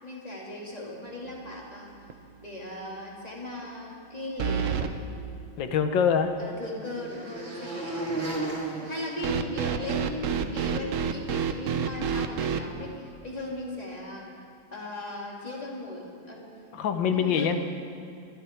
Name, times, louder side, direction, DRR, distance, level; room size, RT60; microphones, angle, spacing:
voice 1, 0.0-1.9 2.4-5.1 6.4-8.4 8.8-14.3 14.7-16.5 17.1-17.6, left 1 dB, 20° left, -3 dB, 2.5 m, -37 dB
sound 1, 1.3-1.7 2.1-2.2 4.4-4.9 9.2-12.6, right 7 dB, 80° right, 0.7 m, -28 dB
sound 2, 5.4-10.0, right 2 dB, 30° right, 2.5 m, -36 dB
voice 2, 5.6-6.3 16.7-17.6, left 7 dB, 70° left, 8 dB, 1.5 m, -24 dB
19.0 x 13.0 x 4.5 m, 2.5 s
omnidirectional pair, 2.2 m